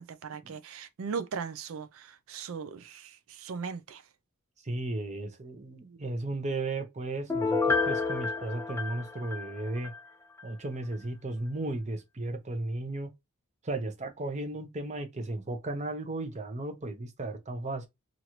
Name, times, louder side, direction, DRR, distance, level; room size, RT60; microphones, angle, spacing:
voice 1, 0.0-4.0, right 6 dB, 70° right, 0.4 m, -38 dB
voice 2, 4.6-9.9 10.4-13.1 13.6-17.9, right 2 dB, 35° right, 0.8 m, -35 dB
Piano, 7.3-10.0 10.4-10.5, left 4 dB, 10° left, 0.3 m, -30 dB
2.9 x 2.6 x 3.0 m
head